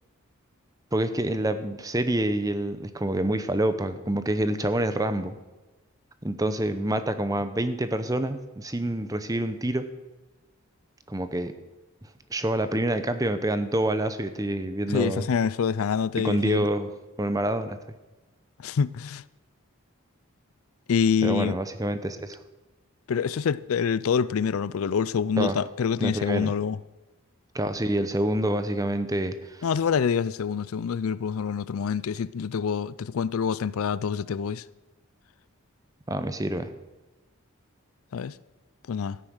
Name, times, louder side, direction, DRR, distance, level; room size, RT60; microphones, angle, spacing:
voice 1, 0.9-5.3 6.2-9.9 11.1-11.5 12.3-15.3 16.2-16.9 17.2-17.8 21.2-22.4 25.4-25.6 26.0-26.5 27.5-29.6 36.1-36.7, right 1 dB, 15° right, 0.7 m, -27 dB
voice 2, 14.9-16.7 18.6-19.2 20.9-21.6 23.1-26.8 29.6-34.6 38.1-38.3 38.9-39.2, left 6 dB, 75° left, 0.4 m, -26 dB
13.0 x 10.0 x 6.3 m
head